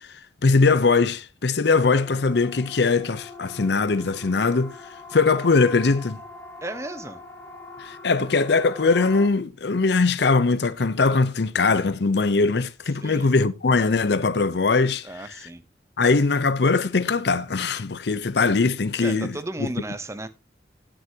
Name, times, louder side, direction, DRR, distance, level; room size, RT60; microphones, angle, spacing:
voice 1, 0.4-4.8 5.1-6.2 7.8-15.5 16.0-19.7, left 4 dB, 60° left, 0.6 m, -21 dB
Siren, 1.7-9.3, left 2 dB, 10° left, 1.5 m, -42 dB
voice 2, 6.6-7.2 13.0-13.3 15.0-15.6 19.0-20.3, right 2 dB, 15° right, 0.7 m, -34 dB
16.5 x 6.4 x 2.8 m
head